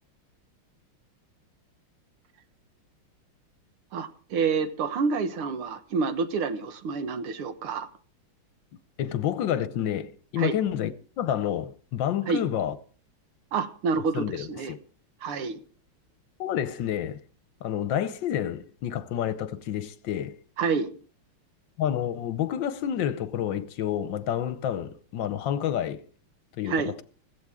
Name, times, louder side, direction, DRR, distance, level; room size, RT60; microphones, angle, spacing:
voice 1, 3.9-7.9 10.4-10.6 12.3-12.4 13.5-14.7 15.2-15.6 20.6-20.9 26.7-26.9, right 5 dB, 85° right, 2.2 m, -28 dB
voice 2, 9.0-12.8 14.1-14.8 16.4-17.2 17.6-20.4 21.8-26.0 26.6-27.0, left 10 dB, 70° left, 1.4 m, -29 dB
16.0 x 15.0 x 3.6 m
omnidirectional pair, 2.3 m